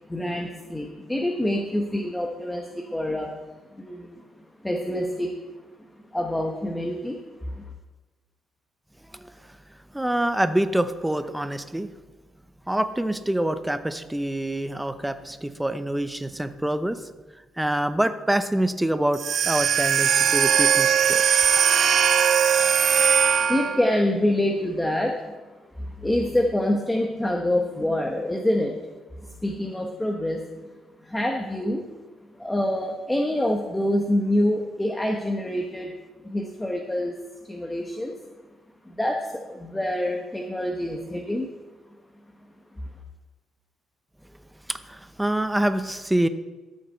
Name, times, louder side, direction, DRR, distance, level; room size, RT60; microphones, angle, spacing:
voice 1, 0.1-3.3 3.7-4.2 4.6-5.3 6.1-7.2 7.5-7.6 23.5-25.3 25.8-28.7 29.4-30.4 31.0-31.8 32.4-35.9 36.2-37.1 37.5-38.2 38.8-41.5, left 1 dB, 10° left, 2 dB, 1.1 m, -26 dB
voice 2, 9.1-9.6 9.9-11.9 12.7-17.0 17.6-21.5 44.7-46.3, right 1 dB, 5° right, 11 dB, 0.7 m, -26 dB
sound 1, 19.1-23.9, right 8 dB, 60° right, 0.5 m, -20 dB
13.5 x 6.7 x 4.5 m, 1.2 s
cardioid pair, 90°, 0 cm